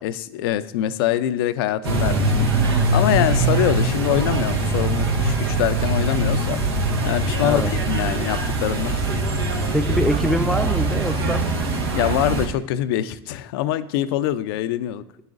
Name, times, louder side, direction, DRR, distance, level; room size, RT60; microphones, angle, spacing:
voice 1, 0.0-6.6 7.0-9.8 11.9-15.0, left 12 dB, 70° left, 13 dB, 0.4 m, -24 dB
sound 1, 1.8-12.5, right 2 dB, 80° right, 1.2 m, -22 dB
voice 2, 7.4-7.7 9.7-11.5, equal, ahead, 9 dB, 0.6 m, -24 dB
9.4 x 8.8 x 2.5 m, 0.84 s
hypercardioid pair, 75°, 13 cm